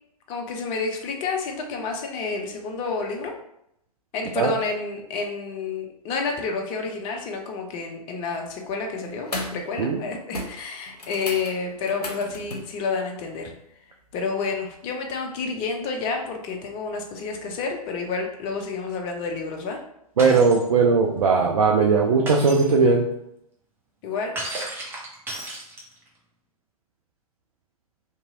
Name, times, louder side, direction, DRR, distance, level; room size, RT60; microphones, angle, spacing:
voice 1, 0.3-3.3 4.1-13.5 14.1-19.8 24.0-24.4, left 4 dB, 30° left, 2 dB, 0.5 m, -29 dB
sound 1, 8.5-8.8 9.2-9.7 9.9-10.1 10.3-12.7 14.7-14.8, left 2 dB, 90° left, 0.6 m, -35 dB
Shatter, 20.2-20.6 22.3-22.7 24.4-26.1, right 2 dB, 10° right, 0.6 m, -33 dB
voice 2, 20.2-23.1, right 4 dB, 65° right, 0 dB, 0.4 m, -19 dB
2.7 x 2.7 x 2.6 m, 0.77 s
figure-of-eight pair, 110°, 20 cm